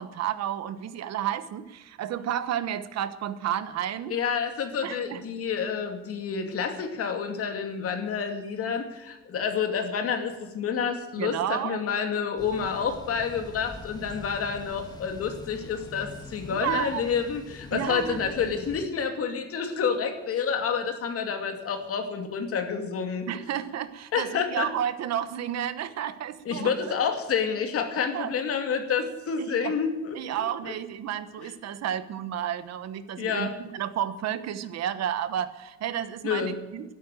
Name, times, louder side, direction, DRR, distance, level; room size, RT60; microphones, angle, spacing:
voice 1, 0.0-4.1 4.8-5.2 11.2-11.8 16.5-17.0 17.7-18.3 23.3-26.9 28.1-28.3 29.4-29.7 30.1-36.9, right 10 dB, 60° right, 13 dB, 1.1 m, -31 dB
voice 2, 4.1-23.3 24.1-24.7 26.5-30.7 31.4-31.5 33.2-33.5 36.2-36.6, left 6 dB, 50° left, 6 dB, 2.5 m, -29 dB
Thunder / Bicycle, 12.4-18.9, left 2 dB, 15° left, 1.8 m, -44 dB
12.5 x 11.5 x 9.0 m, 1.1 s
cardioid pair, 165°, 29 cm